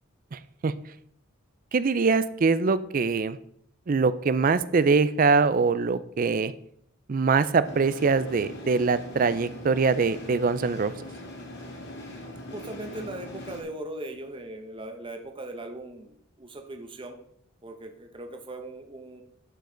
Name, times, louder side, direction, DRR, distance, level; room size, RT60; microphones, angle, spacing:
voice 1, 0.3-0.7 1.7-3.4 3.9-6.5 7.1-10.9, right 4 dB, 40° right, 15 dB, 0.4 m, -23 dB
sound 1, 7.6-13.6, left 1 dB, 55° left, 2.0 m, -41 dB
voice 2, 12.5-17.2 17.6-19.2, right 1 dB, 25° right, 5 dB, 0.8 m, -39 dB
12.0 x 5.4 x 3.8 m, 0.67 s
head